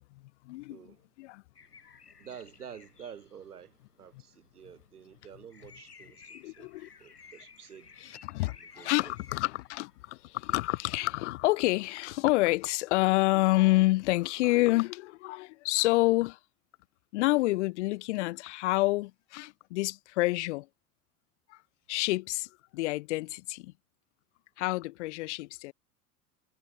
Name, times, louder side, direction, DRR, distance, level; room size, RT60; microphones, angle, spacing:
voice 1, 0.0-0.8 1.2-1.4 6.3-6.9 8.2-16.4 17.1-20.7 21.5-21.6 21.9-23.7 24.6-25.7, left 20 dB, 50° left, 0.5 m, -28 dB
voice 2, 0.7-1.0 2.2-7.9 8.6-9.1, right 8 dB, 75° right, 1.7 m, -49 dB
sound 1, 1.6-10.4, left 5 dB, 90° left, 1.0 m, -56 dB
figure-of-eight pair, 75°, 45 cm